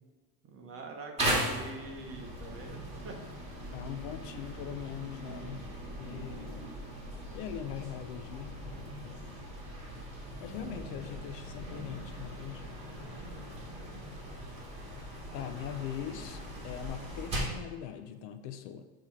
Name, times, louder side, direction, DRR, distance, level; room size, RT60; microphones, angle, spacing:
voice 1, 0.4-3.2 5.9-7.0, right 3 dB, 30° right, 2 dB, 0.9 m, -46 dB
sound 1, 1.2-17.7, right 1 dB, 15° right, 1.7 m, -39 dB
voice 2, 3.7-5.7 6.0-6.5 7.3-8.6 9.0-9.2 10.4-12.8 15.3-18.9, left 10 dB, 55° left, 9 dB, 0.5 m, -41 dB
7.5 x 3.0 x 4.7 m, 1.3 s
supercardioid pair, 140°, 44 cm